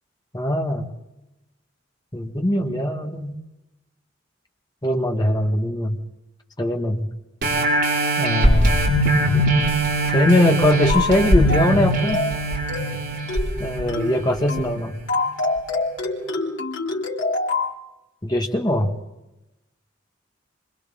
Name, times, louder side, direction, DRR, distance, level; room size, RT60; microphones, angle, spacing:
voice 1, 0.3-0.9 2.1-3.4 4.8-6.0 6.6-7.1 8.2-8.8 9.3-9.5 10.1-12.2 13.6-15.0 18.2-18.9, left 1 dB, 20° left, 2 dB, 1.8 m, -21 dB
sound 1, 7.4-14.6 15.1-15.2, right 1 dB, 55° right, 5.8 m, -21 dB
sound 2, 10.9-11.2 11.5-11.8 12.1-12.4 12.7-13.0 13.3-13.6 13.9-14.2 14.5-14.7 15.1-17.7, left 3 dB, 70° left, 3.4 m, -26 dB
27.5 x 26.0 x 3.8 m, 0.95 s
head